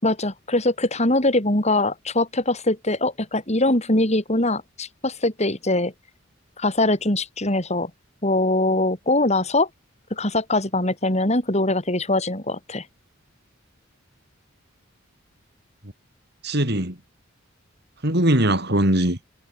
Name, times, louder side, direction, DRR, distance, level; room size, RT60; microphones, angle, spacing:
voice 1, 0.0-5.9 6.6-7.9 8.2-9.7 10.1-12.9, left 2 dB, 35° left, 5.2 m, -22 dB
voice 2, 16.4-17.0 18.0-19.3, right 1 dB, 55° right, 5.8 m, -20 dB
head